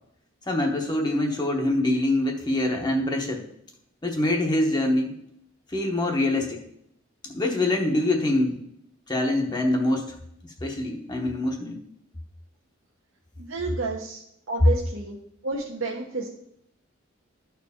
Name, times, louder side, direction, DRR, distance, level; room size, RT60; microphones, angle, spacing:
voice 1, 0.5-3.4 4.0-5.1 5.7-6.6 7.2-8.6 9.1-10.1 10.6-11.8, left 1 dB, 20° left, 1 dB, 0.9 m, -24 dB
voice 2, 13.4-14.2 14.5-15.2 15.4-16.3, right 3 dB, 70° right, -2 dB, 1.0 m, -30 dB
12.5 x 4.6 x 3.6 m, 0.73 s
head